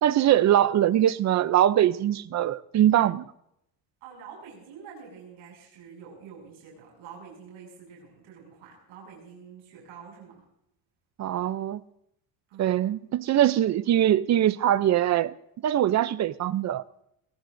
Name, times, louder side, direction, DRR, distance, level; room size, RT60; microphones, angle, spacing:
voice 1, 0.0-3.2 11.2-11.8 12.6-15.3 15.6-16.8, right 11 dB, 40° right, 0.5 m, -22 dB
voice 2, 4.0-10.4 12.5-12.9, right 6 dB, 85° right, 6.4 m, -47 dB
21.5 x 18.5 x 2.6 m
cardioid pair, 170°, 46 cm